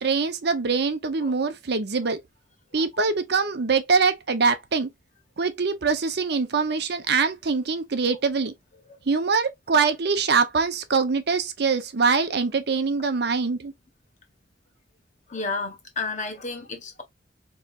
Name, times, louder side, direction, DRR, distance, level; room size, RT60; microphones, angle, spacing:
voice 1, 0.0-2.2 2.7-4.9 5.4-8.5 9.1-13.7, right 5 dB, 60° right, 0.7 m, -23 dB
voice 2, 15.3-17.0, left 3 dB, 40° left, 1.3 m, -32 dB
4.3 x 3.1 x 2.4 m
head